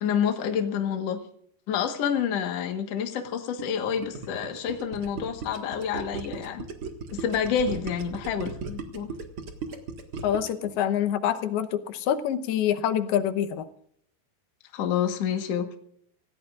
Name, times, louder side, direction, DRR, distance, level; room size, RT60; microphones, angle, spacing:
voice 1, 0.0-1.2 1.7-6.6 7.1-9.1 14.7-15.8, left 8 dB, 55° left, 5 dB, 2.0 m, -28 dB
Gurgling, 3.6-10.7, right 4 dB, 45° right, 1.9 m, -37 dB
voice 2, 10.2-13.7, left 10 dB, 90° left, 9 dB, 2.9 m, -26 dB
27.0 x 16.0 x 2.5 m, 0.68 s
omnidirectional pair, 4.4 m